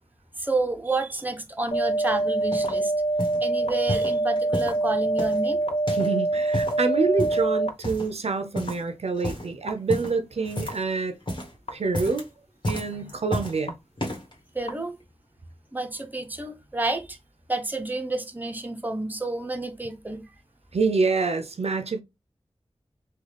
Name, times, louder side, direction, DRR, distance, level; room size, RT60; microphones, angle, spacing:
voice 1, 0.4-2.9 3.4-5.6 14.5-15.0 15.7-17.2 17.5-20.2, right 2 dB, 15° right, 0.7 m, -30 dB
sound 1, 1.7-7.7 8.7-8.8 9.7-9.8 10.7-10.8 11.7-11.8 12.7-12.8 13.7-13.8 14.7-14.8, right 2 dB, 85° left, 0.5 m, -25 dB
sound 2, 2.0-2.8 3.2-3.4 3.9-4.8 5.2-6.2 6.4-6.8 7.2-7.5 7.8-8.2 8.5-8.9 9.1-9.5 9.9-10.9 11.2-11.5 11.8-12.3 12.6-13.6 14.0-14.3 15.0-15.1, equal, 50° left, 1.5 m, -32 dB
voice 2, 5.9-11.1 11.7-12.3 12.7-13.8 20.7-22.0, right 4 dB, 75° right, 0.5 m, -26 dB
3.7 x 2.3 x 3.3 m
wide cardioid pair, 50°, 11 cm